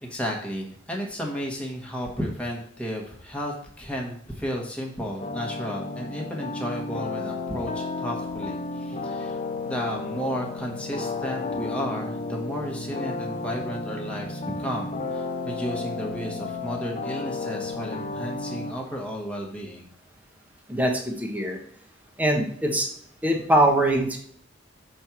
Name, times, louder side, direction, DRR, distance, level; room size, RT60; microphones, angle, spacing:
voice 1, 0.0-19.9, equal, 5° left, -1 dB, 1.4 m, -33 dB
sound 1, 5.2-18.7, left 3 dB, 35° left, 0.8 m, -32 dB
voice 2, 20.7-21.6 22.2-22.9 23.2-24.2, right 1 dB, 10° right, 1 dB, 1.2 m, -22 dB
6.4 x 4.4 x 5.9 m, 0.63 s
head